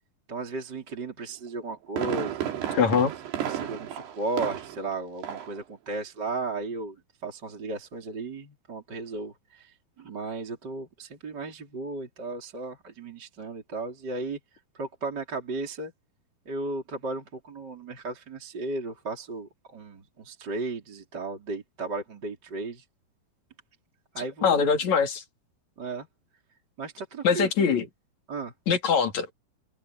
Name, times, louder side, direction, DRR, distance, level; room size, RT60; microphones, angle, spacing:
voice 1, 0.3-2.5 3.4-14.4 14.7-15.9 16.5-22.8 24.1-24.7 25.8-26.1 26.8-27.5 28.3-28.5, right 3 dB, 25° right, 3.9 m, -35 dB
Fireworks, 1.5-4.9 5.2-5.6 5.9-6.0, right 10 dB, 75° right, 4.5 m, -33 dB
voice 2, 2.7-3.1 24.4-25.2 27.2-27.9 28.7-29.3, left 6 dB, 45° left, 3.5 m, -22 dB
omnidirectional pair, 4.8 m